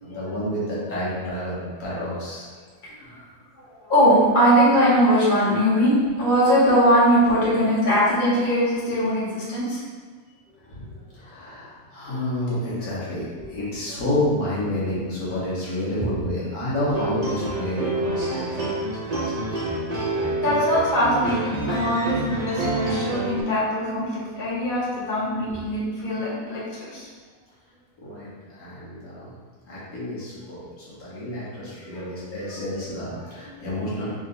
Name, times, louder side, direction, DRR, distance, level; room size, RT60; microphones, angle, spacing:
voice 1, 0.0-2.5 10.7-10.9 11.1-18.7 19.1-19.2 19.5-19.6 28.0-29.4 29.7-34.1, left 1 dB, 65° left, -8 dB, 1.6 m, -29 dB
voice 2, 3.9-9.8 16.0-16.1 18.2-18.3 20.4-27.1 31.9-32.6, equal, 35° left, -8 dB, 1.2 m, -21 dB
sound 1, 16.8-23.4, right 2 dB, 50° right, 0.4 m, -28 dB
3.8 x 3.1 x 3.9 m, 1.5 s
omnidirectional pair, 1.7 m